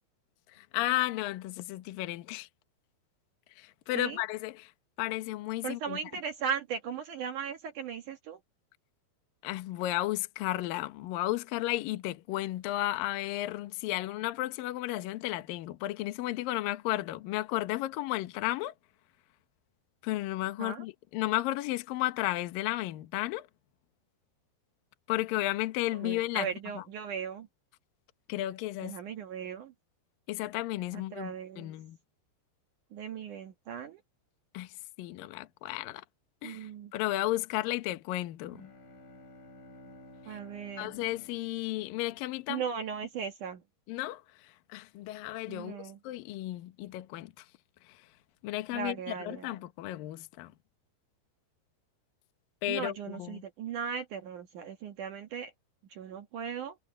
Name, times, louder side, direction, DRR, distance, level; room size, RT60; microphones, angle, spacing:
voice 1, 0.5-2.5 3.5-4.7 5.0-6.0 9.4-18.7 20.0-23.5 25.1-26.5 26.8-26.9 28.3-29.0 30.3-32.0 34.5-36.0 36.4-38.7 40.2-40.4 40.8-42.6 43.9-47.5 47.8-48.1 48.4-50.5 52.6-53.4, left 16 dB, 70° left, 2.4 m, -33 dB
voice 2, 5.6-8.4 20.6-20.9 25.9-27.5 28.8-29.7 30.9-31.7 32.9-34.0 36.4-36.9 40.3-40.9 42.5-43.6 45.5-46.0 48.7-49.6 52.7-55.5 55.9-56.8, right 7 dB, 60° right, 2.3 m, -37 dB
sound 1, 38.3-42.4, left 1 dB, 50° left, 5.4 m, -53 dB
omnidirectional pair, 5.0 m